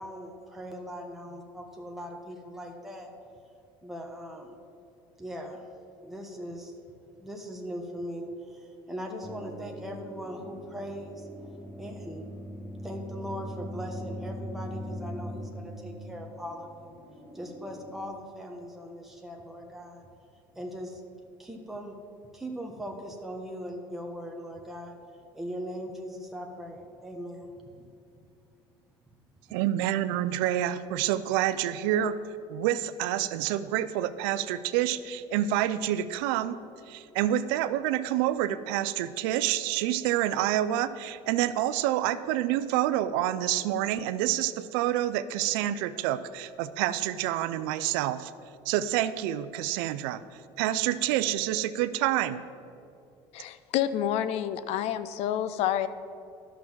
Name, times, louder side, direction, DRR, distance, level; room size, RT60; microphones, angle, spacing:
voice 1, 0.0-3.1 3.8-4.6 5.2-5.6 6.0-6.7 7.2-11.3 11.8-12.2 12.8-17.0 17.3-20.0 20.5-21.0 21.4-21.9 22.3-25.0 25.3-27.9, equal, ahead, 0 dB, 1.2 m, -40 dB
sound 1, 9.2-18.0, equal, 15° left, 1.4 m, -41 dB
voice 2, 29.5-32.2 32.5-36.6 36.9-48.3 48.7-50.2 50.6-52.4, right 12 dB, 80° right, 14 dB, 0.5 m, -28 dB
voice 3, 53.3-55.9, left 11 dB, 65° left, 14 dB, 0.6 m, -28 dB
11.5 x 6.1 x 7.3 m, 2.5 s
supercardioid pair, 100°, 12 cm